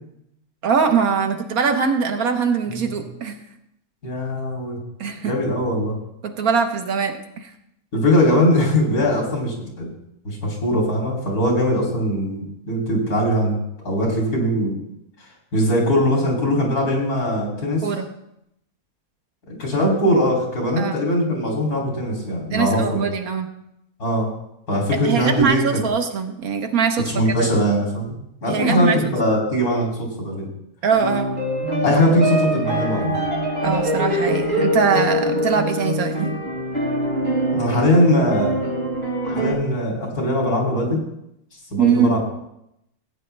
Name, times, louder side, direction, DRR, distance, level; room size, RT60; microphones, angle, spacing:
voice 1, 0.6-3.4 5.0-5.3 6.2-7.5 17.8-18.1 20.8-21.0 22.5-23.5 25.0-27.1 27.4-27.5 28.5-29.0 30.8-31.3 33.6-36.4 41.8-42.2, right 6 dB, 70° right, 6 dB, 1.5 m, -22 dB
voice 2, 4.0-4.8 5.2-6.0 7.9-9.9 10.3-13.6 13.8-14.8 15.5-17.9 19.5-23.1 24.0-24.3 24.7-25.8 27.1-28.2 28.4-30.5 31.8-33.2 37.5-38.6 39.2-41.0 41.7-42.2, equal, 80° left, -1 dB, 3.5 m, -21 dB
sound 1, 30.9-39.5, equal, 45° right, 5.8 m, -23 dB
15.5 x 9.0 x 3.3 m, 0.80 s
omnidirectional pair, 1.6 m